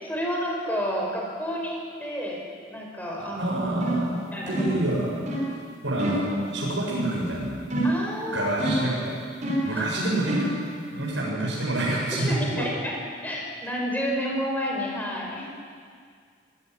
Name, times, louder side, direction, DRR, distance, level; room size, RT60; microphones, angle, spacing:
voice 1, 0.0-3.5 4.3-4.6 7.8-8.5 9.7-9.9 12.1-12.9 13.2-15.5, equal, 10° left, -1 dB, 5.2 m, -30 dB
voice 2, 3.2-4.2 4.5-5.1 5.8-7.7 8.3-9.2 9.6-10.5 10.9-12.7, right 1 dB, 80° right, -5 dB, 7.4 m, -27 dB
sound 1, 3.8-4.1 4.5-4.8 5.3-5.5 6.0-6.3 7.7-8.1 8.6-9.0 9.4-9.8 10.3-10.6, right 1 dB, 40° right, 5.9 m, -27 dB
24.5 x 17.0 x 9.7 m, 2.1 s
head